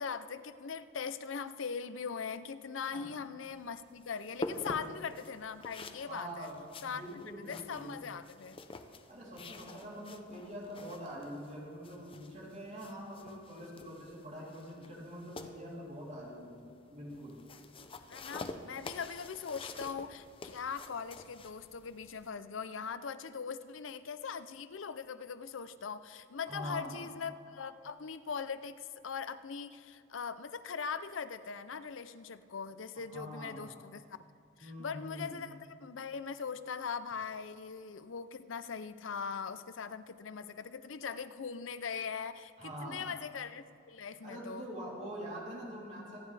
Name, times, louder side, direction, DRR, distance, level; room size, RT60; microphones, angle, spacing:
voice 1, 0.0-6.5 6.8-8.6 18.1-34.0 34.6-44.7, left 6 dB, 70° left, 13 dB, 0.6 m, -41 dB
sound 1, 3.4-22.3, left 2 dB, 30° left, 0.7 m, -48 dB
voice 2, 6.1-6.6 6.9-8.2 9.1-16.6 16.9-17.4 26.5-27.0 33.1-33.8 34.6-35.4 42.6-43.1 44.2-46.2, equal, 40° right, -5 dB, 3.3 m, -44 dB
25.0 x 10.0 x 3.4 m, 2.5 s
head